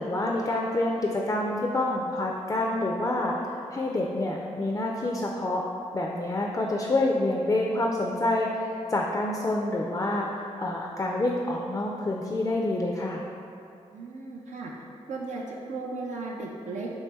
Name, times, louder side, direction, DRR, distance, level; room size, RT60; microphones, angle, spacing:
voice 1, 0.0-5.6 5.9-13.2, left 2 dB, 25° left, 0 dB, 0.3 m, -27 dB
voice 2, 13.9-14.7 15.1-16.9, right 3 dB, 75° right, -2 dB, 0.4 m, -36 dB
3.0 x 2.9 x 3.3 m, 2.6 s
cardioid pair, 50°, 13 cm